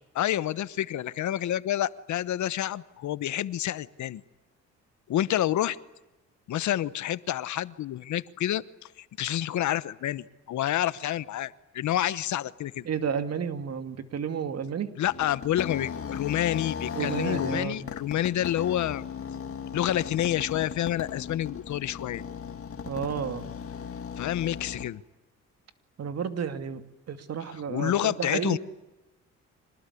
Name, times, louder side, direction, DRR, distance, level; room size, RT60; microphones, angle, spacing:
voice 1, 0.1-4.2 5.1-5.8 6.5-8.6 9.0-12.9 15.0-19.0 19.7-22.2 24.2-25.0 27.7-28.6, left 12 dB, 70° left, 17 dB, 1.1 m, -28 dB
voice 2, 12.8-14.9 16.9-17.9 22.9-23.5 26.0-28.6, right 7 dB, 55° right, 9 dB, 2.5 m, -32 dB
sound 1, 15.0-24.9, left 7 dB, 50° left, 1.9 m, -37 dB
26.0 x 20.0 x 9.9 m, 1.0 s
cardioid pair, 90°, 30 cm